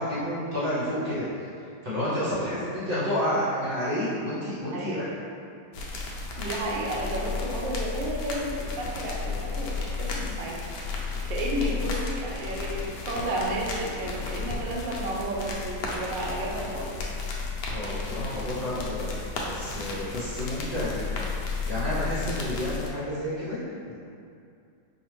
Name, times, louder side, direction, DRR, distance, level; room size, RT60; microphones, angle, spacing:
voice 1, 0.0-5.0 17.7-19.1 19.4-23.6 23.9-24.0, equal, 40° right, -11 dB, 0.9 m, -30 dB
sound 1, 5.7-22.9, left 4 dB, 75° left, 1.2 m, -33 dB
voice 2, 6.4-17.0 18.0-18.2, right 1 dB, 80° right, -3 dB, 1.3 m, -32 dB
4.9 x 2.4 x 3.1 m, 2.4 s
omnidirectional pair, 2.0 m